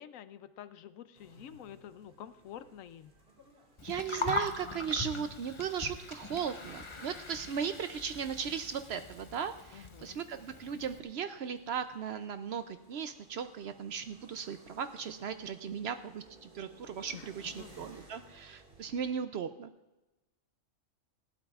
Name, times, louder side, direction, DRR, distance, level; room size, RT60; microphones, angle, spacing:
voice 1, 0.0-3.1 9.7-10.2 17.1-17.9, left 10 dB, 80° left, 13 dB, 1.0 m, -49 dB
sound 1, 1.1-19.1, right 2 dB, 45° right, 2.1 m, -60 dB
Gurgling, 3.8-11.0, left 3 dB, 30° left, 0.6 m, -41 dB
voice 2, 3.8-19.7, right 7 dB, 65° right, 10 dB, 0.7 m, -37 dB
19.5 x 15.5 x 2.4 m, 1.0 s
omnidirectional pair, 1.4 m